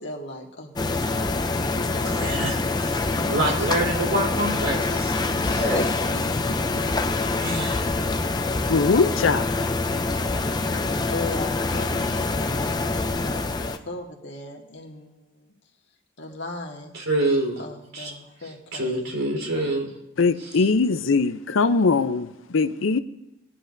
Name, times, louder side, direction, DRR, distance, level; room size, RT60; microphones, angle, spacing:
voice 1, 0.0-2.4 5.4-6.8 10.7-15.5 16.2-17.0 17.6-19.1, left 2 dB, 60° left, 1.7 m, -38 dB
sound 1, 0.8-13.8, left 3 dB, 20° left, 0.5 m, -25 dB
voice 2, 2.0-5.9 7.4-7.8 16.9-17.6 17.9-18.1 18.4-20.0 20.4-20.6, right 1 dB, 90° right, 4.0 m, -27 dB
voice 3, 8.7-9.5 20.2-23.0, left 4 dB, 80° left, 0.6 m, -21 dB
20.5 x 10.0 x 2.6 m
head